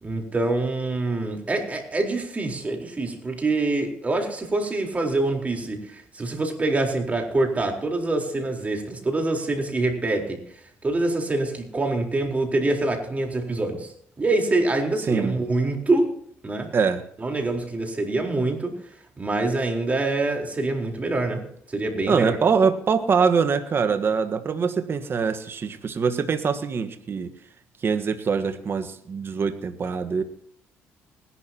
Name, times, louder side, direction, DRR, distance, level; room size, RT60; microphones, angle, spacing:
voice 1, 0.0-10.4 10.8-13.9 14.2-16.1 16.4-16.7 17.2-18.7 19.2-22.4, right 2 dB, 30° right, 2 dB, 4.2 m, -25 dB
voice 2, 15.1-15.4 16.7-17.0 22.1-27.3 27.8-30.2, right 5 dB, 45° right, 8 dB, 1.4 m, -23 dB
20.0 x 11.5 x 2.9 m, 0.67 s
supercardioid pair, 70°, 5 cm